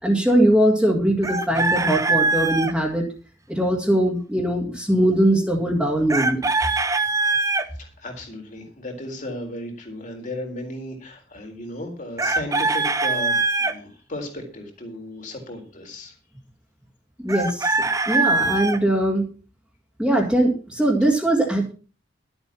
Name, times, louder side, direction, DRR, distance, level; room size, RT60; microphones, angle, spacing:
voice 1, 0.0-3.0 3.5-6.4 17.2-19.3 20.0-21.7, right 1 dB, 5° right, -3 dB, 2.3 m, -21 dB
Chicken rooster, 1.2-2.7 6.1-7.7 12.2-13.7 17.3-18.8, right 3 dB, 20° right, 1.0 m, -22 dB
voice 2, 7.8-16.1, left 1 dB, 45° left, 3 dB, 4.0 m, -35 dB
12.5 x 8.0 x 5.8 m, 0.36 s
head